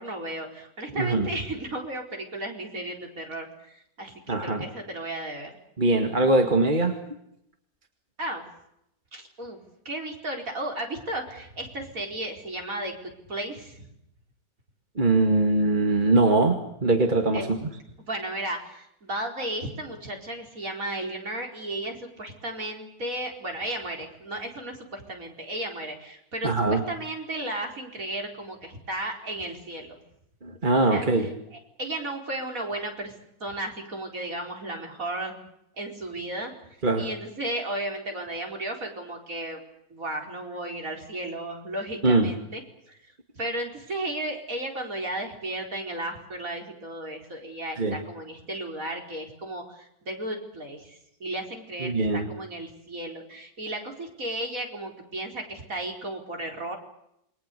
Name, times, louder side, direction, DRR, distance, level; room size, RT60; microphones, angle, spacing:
voice 1, 0.0-5.5 8.2-8.5 9.1-13.9 17.3-17.6 18.0-30.0 30.9-35.4 35.8-36.5 36.9-39.6 39.9-42.6 42.9-43.0 43.3-56.8, right 1 dB, 45° right, 2 dB, 5.0 m, -34 dB
voice 2, 1.0-1.3 4.3-4.7 5.8-7.0 15.0-17.6 26.4-26.8 30.4-31.3 36.8-37.1 42.0-42.3 47.8-48.0 51.8-52.3, right 2 dB, 25° right, 4 dB, 2.2 m, -22 dB
28.5 x 23.0 x 6.9 m, 0.79 s
omnidirectional pair, 1.9 m